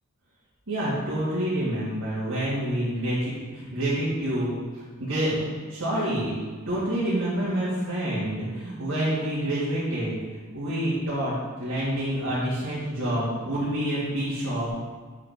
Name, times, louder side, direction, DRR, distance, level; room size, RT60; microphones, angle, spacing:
voice 1, 0.7-6.3 6.7-10.2 10.5-11.3 11.6-14.7, right 1 dB, 65° right, -10 dB, 2.5 m, -27 dB
8.1 x 5.5 x 5.3 m, 1.5 s
head